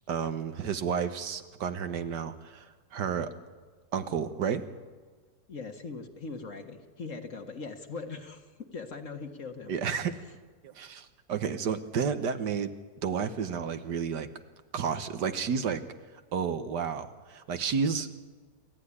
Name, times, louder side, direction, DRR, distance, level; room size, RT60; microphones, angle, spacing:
voice 1, 0.1-3.3 3.9-4.6 9.7-10.2 10.6-12.7 13.0-14.3 14.7-15.8 16.3-18.1, right 6 dB, 75° right, 10 dB, 1.7 m, -31 dB
voice 2, 5.5-9.7, left 4 dB, 50° left, 6 dB, 1.8 m, -40 dB
27.5 x 14.0 x 9.8 m, 1.4 s
omnidirectional pair, 1.9 m